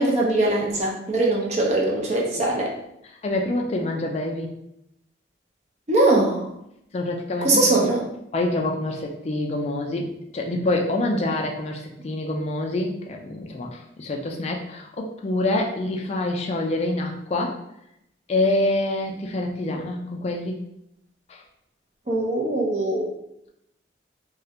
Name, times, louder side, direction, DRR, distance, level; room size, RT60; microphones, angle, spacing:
voice 1, 0.0-2.7 5.9-6.5 7.4-8.1 22.1-23.1, right 2 dB, 35° right, -2 dB, 0.4 m, -21 dB
voice 2, 3.2-4.5 6.9-7.8 8.3-10.1 10.3-17.6 18.3-20.6 21.3-21.4, left 2 dB, 35° left, 1 dB, 0.3 m, -26 dB
2.3 x 2.1 x 2.7 m, 0.80 s
head